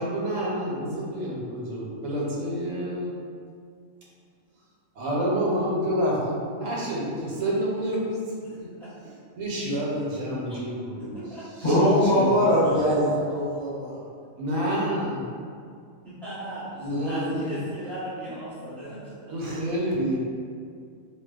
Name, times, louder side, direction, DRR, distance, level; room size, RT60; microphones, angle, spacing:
voice 1, 0.0-3.1 4.9-8.0 8.6-8.7 9.3-11.2 11.6-12.4 14.4-15.2 16.8-17.6 19.3-20.2, equal, 75° right, -5 dB, 1.0 m, -28 dB
voice 2, 8.4-8.9 10.9-11.4 16.0-19.3, right 1 dB, ahead, -12 dB, 0.6 m, -38 dB
voice 3, 11.6-14.0, equal, 40° left, -14 dB, 1.3 m, -21 dB
2.7 x 2.1 x 2.2 m, 2.2 s
omnidirectional pair, 1.4 m